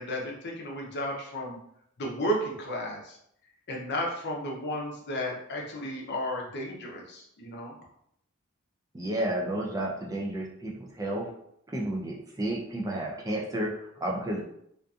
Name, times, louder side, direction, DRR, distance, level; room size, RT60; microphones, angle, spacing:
voice 1, 0.0-1.6 2.0-3.2 3.7-7.7, equal, 50° left, -1 dB, 0.6 m, -33 dB
voice 2, 8.9-11.3 11.7-14.4, right 1 dB, 15° right, -1 dB, 0.4 m, -31 dB
2.6 x 2.5 x 2.3 m, 0.72 s
head